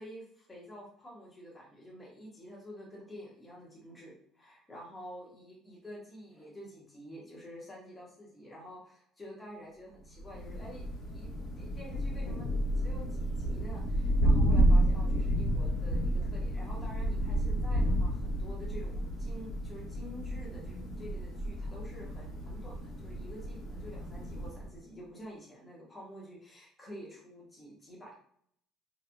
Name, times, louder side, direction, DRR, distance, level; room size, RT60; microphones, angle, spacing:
voice 1, 0.0-11.3 11.6-12.5 12.8-28.1, equal, 10° left, -3 dB, 0.8 m, -49 dB
Thunder, 10.2-24.8, right 1 dB, 45° left, 1.1 m, -31 dB
2.9 x 2.3 x 2.5 m, 0.64 s
cardioid pair, 180°, 0 cm